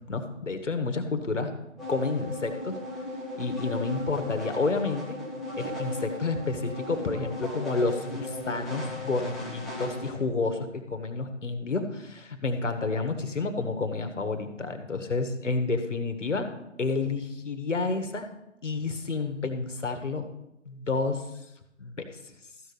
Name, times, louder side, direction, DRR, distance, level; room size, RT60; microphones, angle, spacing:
voice 1, 0.1-1.5 1.9-2.7 3.4-16.5 16.8-18.3 18.6-20.2 20.7-21.2 21.8-22.1, left 3 dB, 75° left, 6 dB, 1.6 m, -30 dB
sound 1, 1.8-10.2, left 1 dB, ahead, 0.4 m, -36 dB
13.5 x 5.2 x 6.9 m, 0.87 s
figure-of-eight pair, 145°, 37 cm